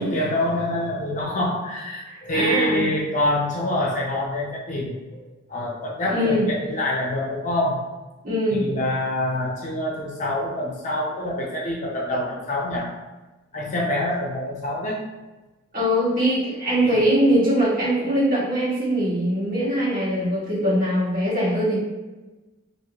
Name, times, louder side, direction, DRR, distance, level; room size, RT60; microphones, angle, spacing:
voice 1, 0.0-7.8 8.5-12.9 13.5-15.0 16.8-17.1, left 1 dB, 35° left, -3 dB, 0.6 m, -26 dB
voice 2, 2.3-2.9 6.1-6.5 8.2-8.7 15.7-21.8, equal, 45° right, -10 dB, 1.5 m, -22 dB
2.9 x 2.6 x 2.9 m, 1.2 s
head